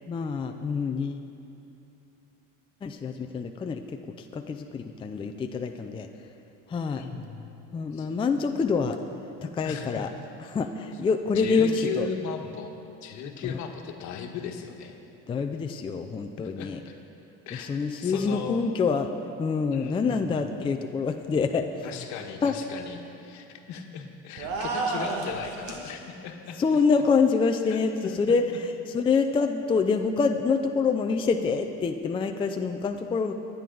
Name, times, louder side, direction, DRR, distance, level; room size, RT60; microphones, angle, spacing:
voice 1, 0.1-1.3 2.8-3.8 4.2-6.1 6.7-7.0 7.7-9.0 9.4-10.1 10.5-12.1 15.3-16.8 17.6-19.1 19.4-21.9 22.4-22.5 26.6-33.3, left 5 dB, 15° left, 5 dB, 0.4 m, -26 dB
voice 2, 6.9-7.5 7.9-8.1 9.6-10.1 11.3-12.7 13.0-15.0 15.7-15.8 16.4-16.7 17.5-18.6 19.7-20.5 21.8-26.6 27.7-28.2, left 7 dB, 65° left, 4 dB, 1.4 m, -37 dB
sound 1, 24.4-25.9, right 3 dB, 85° right, 1.9 m, -31 dB
21.5 x 9.3 x 3.9 m, 2.8 s
cardioid pair, 140°, 31 cm